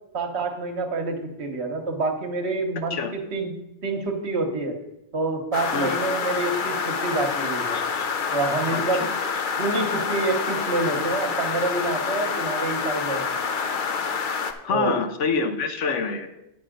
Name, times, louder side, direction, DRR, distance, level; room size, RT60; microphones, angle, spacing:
voice 1, 0.1-3.5 3.8-4.7 5.1-7.8 8.3-9.0 9.6-13.4 14.7-14.9, right 3 dB, 65° right, 4 dB, 1.4 m, -27 dB
sound 1, 5.5-14.5, left 5 dB, 50° left, 0.7 m, -27 dB
voice 2, 7.7-8.1 8.7-9.1 14.6-16.3, left 5 dB, 80° left, 8 dB, 1.2 m, -26 dB
9.2 x 5.5 x 5.1 m, 0.88 s
omnidirectional pair, 1.2 m